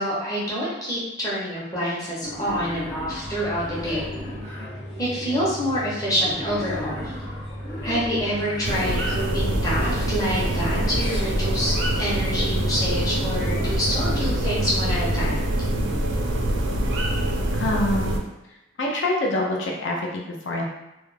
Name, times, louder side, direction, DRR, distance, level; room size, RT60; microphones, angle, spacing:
voice 1, 0.0-4.1 5.0-7.1 7.8-15.4, equal, 20° left, -8 dB, 0.7 m, -27 dB
Wild animals, 2.2-4.7 6.2-8.7, left 1 dB, 35° left, 1.0 m, -36 dB
sound 1, 3.2-15.4, equal, 55° left, 1.1 m, -36 dB
sound 2, 8.6-18.2, right 1 dB, 80° right, 0.4 m, -25 dB
voice 2, 17.5-18.2 18.8-20.6, left 1 dB, 75° left, -1 dB, 0.5 m, -25 dB
2.3 x 2.1 x 3.2 m, 0.92 s
head